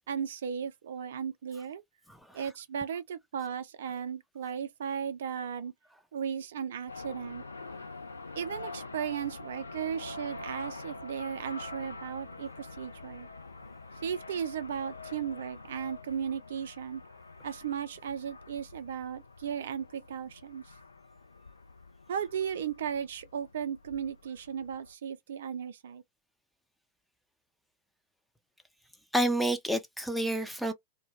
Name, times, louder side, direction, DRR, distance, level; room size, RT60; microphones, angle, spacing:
voice 1, 0.1-1.8 2.3-5.7 6.1-7.4 8.3-13.3 14.0-17.0 17.4-20.6 22.1-26.0, right 7 dB, 60° right, 0.4 m, -36 dB
sound 1, 6.9-24.9, left 3 dB, 80° left, 0.4 m, -46 dB
voice 2, 29.1-30.7, right 1 dB, ahead, 0.4 m, -29 dB
2.2 x 2.1 x 3.2 m
figure-of-eight pair, 90°, 0 cm